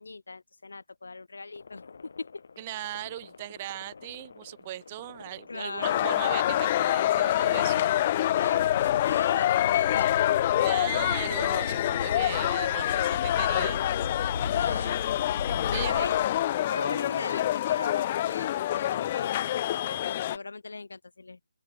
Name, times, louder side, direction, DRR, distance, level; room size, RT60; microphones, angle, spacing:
voice 1, 0.0-2.3 5.5-6.0 8.3-10.4 14.5-15.2 15.7-16.3 16.7-21.4, left 3 dB, 80° left, 2.6 m, -39 dB
sound 1, 1.5-16.6, left 5 dB, 60° left, 1.3 m, -39 dB
voice 2, 2.6-7.9 10.6-13.8 15.7-16.1, right 15 dB, 25° right, 2.0 m, -38 dB
sound 2, 5.8-20.4, left 13 dB, 30° left, 0.5 m, -26 dB
open air
hypercardioid pair, 160°, 0 cm